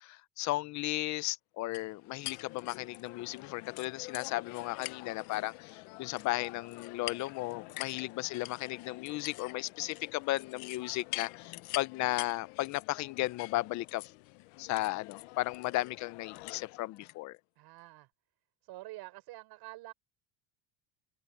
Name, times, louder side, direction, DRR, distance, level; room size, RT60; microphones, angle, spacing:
voice 1, 0.0-14.0 14.6-17.4, left 18 dB, 40° left, 0.5 m, -35 dB
sound 1, 1.7-17.2, left 23 dB, 90° left, 0.9 m, -46 dB
voice 2, 7.7-8.1 17.6-18.1 18.6-19.9, right 19 dB, 60° right, 6.2 m, -48 dB
cardioid pair, 170°, 44 cm